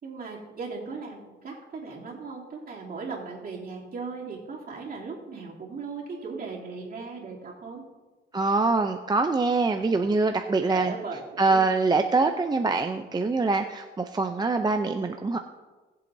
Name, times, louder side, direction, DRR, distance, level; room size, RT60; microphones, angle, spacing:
voice 1, 0.0-7.8 10.7-11.6, right 4 dB, 50° right, -4 dB, 3.0 m, -38 dB
voice 2, 8.3-10.9 11.4-15.4, right 3 dB, 20° right, 5 dB, 0.6 m, -24 dB
19.5 x 7.7 x 2.7 m, 1.3 s
cardioid pair, 90°, 20 cm